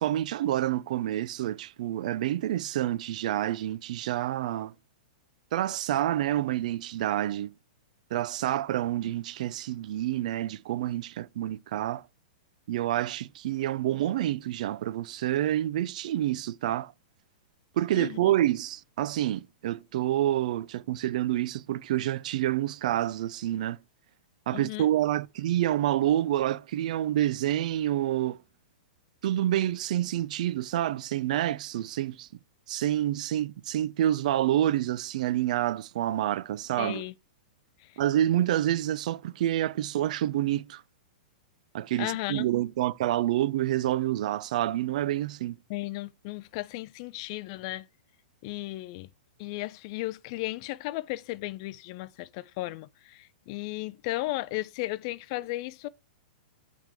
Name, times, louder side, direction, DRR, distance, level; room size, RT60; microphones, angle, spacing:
voice 1, 0.0-4.7 5.5-7.5 8.1-12.0 12.7-16.9 17.8-23.8 24.5-28.4 29.2-32.3 32.7-37.0 38.0-40.8 41.7-45.6, right 13 dB, 55° right, 0.4 m, -28 dB
voice 2, 17.9-18.3 24.5-24.9 36.8-37.1 37.8-38.0 42.0-42.5 45.7-47.9 48.4-49.1 49.4-55.9, left 19 dB, 40° left, 0.4 m, -35 dB
9.0 x 3.6 x 4.6 m
hypercardioid pair, 160°, 5 cm